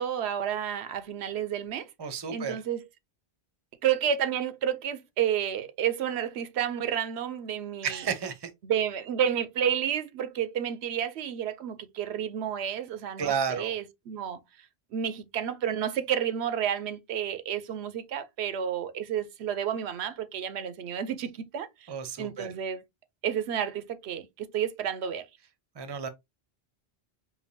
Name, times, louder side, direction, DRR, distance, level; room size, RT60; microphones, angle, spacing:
voice 1, 0.0-1.9 2.3-2.9 3.8-8.0 8.6-14.4 14.9-21.9 22.2-22.8 23.2-25.3, right 9 dB, 90° right, 0.9 m, -30 dB
voice 2, 2.0-2.6 7.8-8.5 13.2-13.7 21.9-22.5 25.8-26.1, right 6 dB, 30° right, 0.5 m, -32 dB
5.0 x 2.3 x 2.7 m
omnidirectional pair, 1.1 m